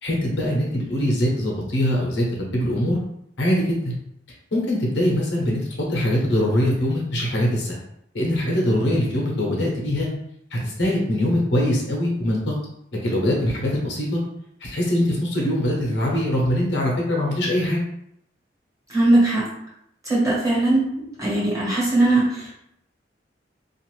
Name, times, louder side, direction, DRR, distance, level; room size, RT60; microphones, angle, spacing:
voice 1, 0.0-2.2 2.5-3.0 3.4-3.9 4.5-7.8 8.1-10.1 10.5-12.5 13.0-14.2 14.6-17.8, left 1 dB, 75° left, -2 dB, 0.9 m, -22 dB
voice 2, 18.9-19.4 20.0-20.8 21.2-22.5, right 2 dB, 20° right, -7 dB, 1.3 m, -19 dB
2.5 x 2.5 x 3.1 m, 0.74 s
head